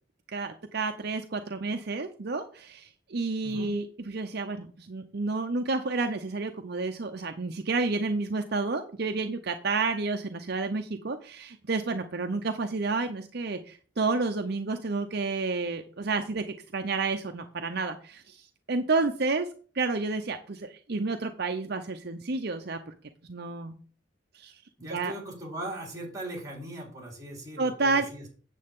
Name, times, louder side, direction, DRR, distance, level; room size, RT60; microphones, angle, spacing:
voice 1, 0.3-16.4 16.7-19.5 19.7-22.9 23.3-23.8 24.3-24.5 24.9-25.1 27.6-28.1, right 3 dB, 60° right, 6 dB, 0.7 m, -30 dB
voice 2, 24.8-28.3, right 1 dB, 20° right, 0 dB, 4.0 m, -39 dB
9.2 x 7.7 x 3.7 m, 0.41 s
head